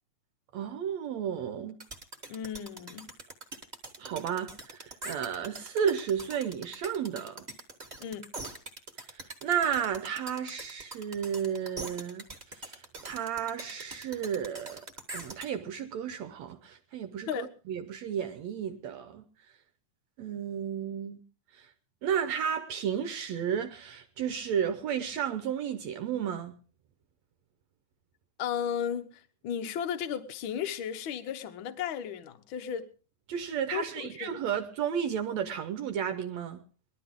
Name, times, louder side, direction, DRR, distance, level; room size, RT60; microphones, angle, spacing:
voice 1, 0.5-1.8 4.0-7.5 9.1-12.3 12.5-14.8 15.1-19.2 20.2-21.2 21.5-21.7 22.0-26.6 33.3-36.6, right 8 dB, 70° right, 2.0 m, -33 dB
sound 1, 1.8-15.5, right 2 dB, 15° right, 1.5 m, -43 dB
voice 2, 2.3-3.1 8.0-8.3 17.3-17.5 28.4-32.9 33.7-34.3, left 8 dB, 65° left, 1.3 m, -35 dB
20.5 x 12.5 x 3.6 m
omnidirectional pair, 3.6 m